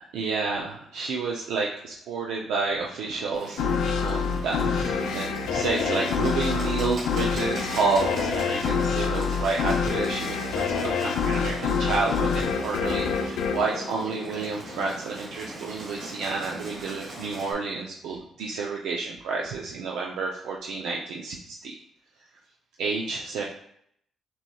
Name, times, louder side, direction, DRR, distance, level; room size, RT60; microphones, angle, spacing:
voice 1, 0.1-10.9 11.3-21.7 22.8-23.4, right 4 dB, 85° right, -1 dB, 0.5 m, -30 dB
Bird, 3.3-17.5, right 2 dB, 65° right, 1.4 m, -41 dB
sound 1, 3.6-14.8, left 5 dB, 85° left, 0.5 m, -27 dB
6.0 x 3.0 x 2.3 m, 0.69 s
cardioid pair, 90°, 0 cm